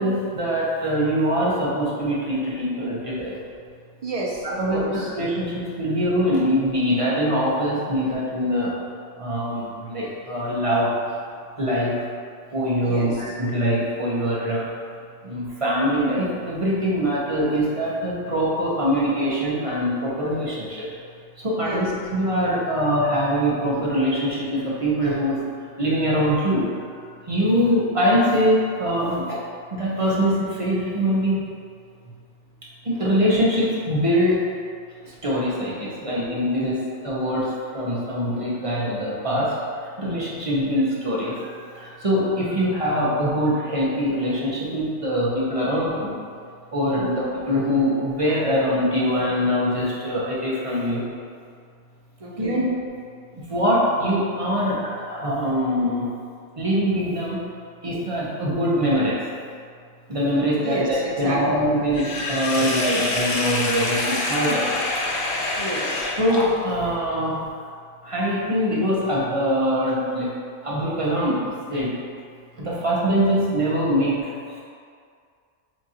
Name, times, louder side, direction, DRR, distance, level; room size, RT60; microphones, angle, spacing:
voice 1, 0.0-3.4 4.6-8.7 9.2-10.9 11.6-12.0 12.5-14.7 15.2-20.9 21.4-25.4 25.8-26.7 27.3-29.4 29.7-31.4 32.8-34.4 35.2-36.8 37.0-39.5 40.0-41.5 41.7-46.2 46.7-51.0 52.4-52.7 53.5-56.1 56.6-57.4 57.8-59.2 60.1-64.8 66.2-67.4 68.0-70.4 70.6-72.0 72.6-74.3, equal, 30° right, -7 dB, 0.7 m, -23 dB
voice 2, 4.0-5.1 12.8-13.3 21.6-21.9 46.9-47.2 52.2-52.6 60.6-61.7 65.6-66.1, right 2 dB, 60° right, -4 dB, 0.3 m, -30 dB
Sink (filling or washing), 61.9-66.9, left 2 dB, 55° left, 0.7 m, -26 dB
7.4 x 2.5 x 2.8 m, 2.2 s
omnidirectional pair, 1.3 m